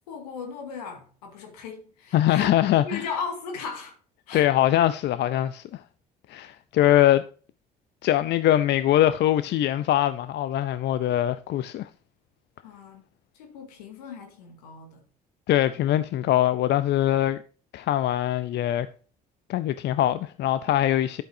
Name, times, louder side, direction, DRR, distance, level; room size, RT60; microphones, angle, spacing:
voice 1, 0.1-4.0 4.3-4.5 12.6-13.0 13.3-15.0, left 5 dB, 90° left, 2.2 m, -37 dB
voice 2, 2.1-3.0 4.3-5.8 6.3-7.2 8.0-11.9 15.5-17.4 17.7-18.9 19.5-21.2, left 12 dB, 60° left, 0.6 m, -22 dB
10.5 x 7.9 x 2.7 m
hypercardioid pair, 60°, 20 cm